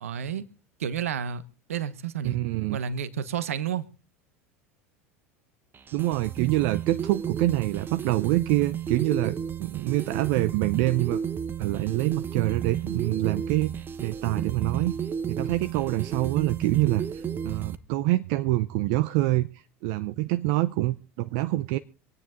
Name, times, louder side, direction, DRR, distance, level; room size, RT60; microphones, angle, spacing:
voice 1, 0.0-0.4 0.8-1.4 1.7-2.4 2.7-3.9, right 8 dB, 75° right, 1.2 m, -30 dB
voice 2, 2.2-2.8 5.9-11.2 11.6-13.7 14.0-14.9 15.3-21.8, right 17 dB, 60° right, 0.7 m, -26 dB
sound 1, 5.7-17.8, right 8 dB, 30° right, 1.1 m, -33 dB
25.5 x 9.7 x 3.7 m
hypercardioid pair, 80°, 8 cm